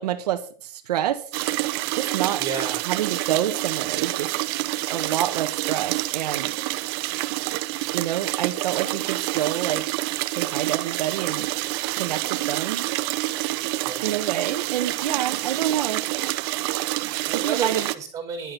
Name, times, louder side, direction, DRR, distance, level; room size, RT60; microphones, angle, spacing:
voice 1, 0.0-1.6 1.9-2.4 2.9-4.3 4.9-6.5 7.9-9.8 10.3-11.5 11.9-12.8 14.0-16.4 17.3-17.9, right 11 dB, 75° right, 6 dB, 1.3 m, -28 dB
sound 1, 1.3-18.0, right 18 dB, 40° right, 0.8 m, -27 dB
voice 2, 2.4-2.8 13.8-14.2 17.1-18.5, right 6 dB, 15° right, 3 dB, 4.6 m, -32 dB
11.0 x 9.1 x 5.9 m, 0.43 s
supercardioid pair, 165°, 20 cm